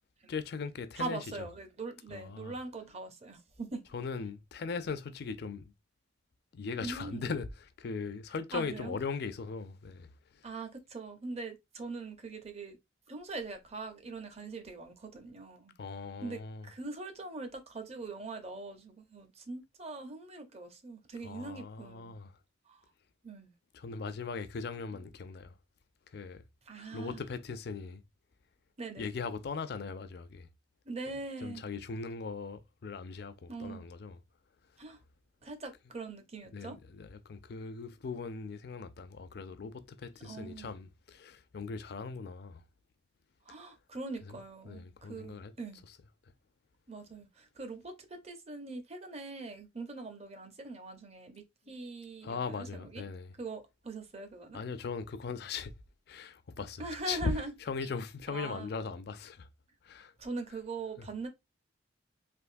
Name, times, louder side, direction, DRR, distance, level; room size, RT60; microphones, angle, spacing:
voice 1, 0.3-1.2 2.1-2.6 3.9-5.7 6.5-7.5 7.8-10.5 15.8-16.7 21.2-22.4 23.7-25.6 26.1-26.4 26.9-28.0 29.0-30.5 31.4-34.2 36.5-42.6 44.3-44.4 44.7-45.5 52.2-53.3 54.5-55.7 56.1-57.3 57.6-59.5 59.8-60.1 61.0-61.1, left 4 dB, 55° left, 0.4 m, -39 dB
voice 2, 1.0-3.8 6.8-7.3 8.5-8.9 10.4-12.8 13.1-15.7 16.2-22.1 22.7-22.8 23.2-23.5 26.7-27.2 28.8-29.1 30.9-31.6 33.5-33.8 34.8-35.0 35.4-36.8 40.2-40.8 43.5-45.8 46.9-53.0 53.4-54.6 56.8-57.5 58.3-58.7 60.2-61.3, right 3 dB, 35° right, 0.6 m, -42 dB
3.5 x 2.5 x 2.5 m
head